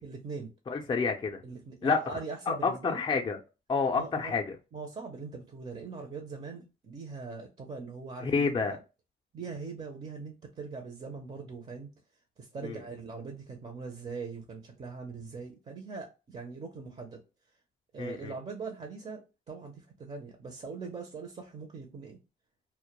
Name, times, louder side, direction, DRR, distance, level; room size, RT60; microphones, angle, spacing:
voice 1, 0.0-0.5 1.4-3.0 4.0-4.3 4.7-8.8 9.3-11.9 12.4-17.2 17.9-22.2, right 4 dB, 30° right, 0.5 m, -41 dB
voice 2, 0.7-1.4 1.8-2.0 2.5-3.4 3.7-4.6 8.2-8.8 12.6-12.8 18.0-18.3, left 5 dB, 25° left, 0.4 m, -29 dB
2.1 x 2.1 x 2.9 m
cardioid pair, 90°, 20 cm